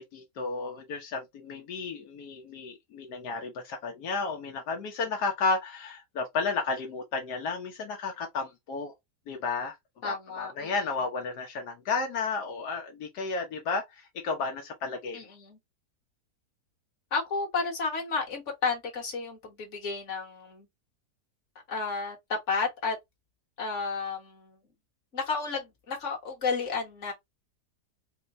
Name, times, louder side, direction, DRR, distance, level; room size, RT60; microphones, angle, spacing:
voice 1, 0.0-8.9 9.3-9.8 10.0-15.2, left 4 dB, 80° left, 1.4 m, -32 dB
voice 2, 10.0-10.7 15.1-15.6 17.1-20.7 21.7-23.0 23.6-24.6 25.1-27.1, left 4 dB, 50° left, 1.7 m, -32 dB
4.4 x 2.2 x 3.8 m
omnidirectional pair, 1.7 m